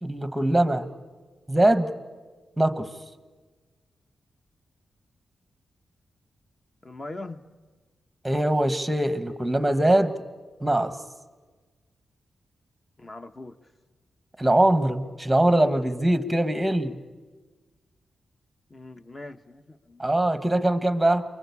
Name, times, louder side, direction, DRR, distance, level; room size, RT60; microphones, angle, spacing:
voice 1, 0.0-0.9 1.5-1.9 2.6-2.9 8.2-10.1 10.6-10.9 14.4-17.0 20.0-21.2, right 1 dB, 5° right, 11 dB, 1.3 m, -22 dB
voice 2, 6.8-7.4 13.0-13.6 18.7-20.0, left 2 dB, 25° left, 9 dB, 1.1 m, -41 dB
28.0 x 23.5 x 8.4 m, 1.4 s
wide cardioid pair, 110°, 0 cm